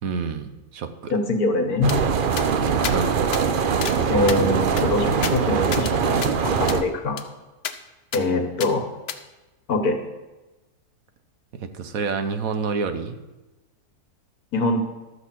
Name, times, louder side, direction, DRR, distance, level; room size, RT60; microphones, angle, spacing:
voice 1, 0.0-1.1 2.9-3.2 11.5-13.2, right 5 dB, 65° right, 9 dB, 1.2 m, -28 dB
voice 2, 1.1-1.9 4.1-7.2 8.1-8.9 9.7-10.0 14.5-14.8, left 2 dB, 75° left, 5 dB, 1.8 m, -23 dB
sound 1, 1.8-6.8, right 6 dB, 50° right, 0.6 m, -22 dB
sound 2, 1.9-2.0 2.4-2.5 2.8-3.0 3.3-3.4 3.8-4.0 4.3-5.9 6.2-6.3 6.7-6.8 7.2-7.3 7.6-7.8 8.1-8.2 8.6-8.7 9.1-9.2, left 8 dB, 55° left, 0.8 m, -32 dB
12.5 x 6.3 x 7.4 m, 1.1 s
omnidirectional pair, 1.6 m